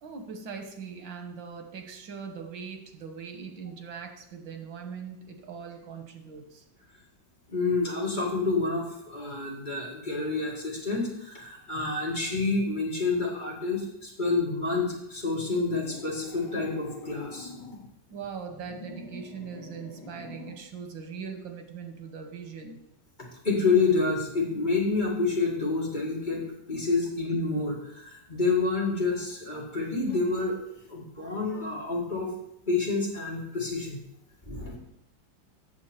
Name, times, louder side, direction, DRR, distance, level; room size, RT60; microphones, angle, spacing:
voice 1, 0.0-6.6 18.1-22.8, right 6 dB, 90° right, 5 dB, 1.7 m, -41 dB
voice 2, 7.5-17.5 23.4-26.4 26.7-30.5 30.9-32.3 32.7-34.0 34.5-34.8, left 3 dB, 25° left, -4 dB, 1.8 m, -28 dB
sound 1, 15.6-17.9 18.5-20.7, left 4 dB, 75° left, 1.5 m, -43 dB
8.1 x 7.1 x 4.4 m, 0.80 s
omnidirectional pair, 2.0 m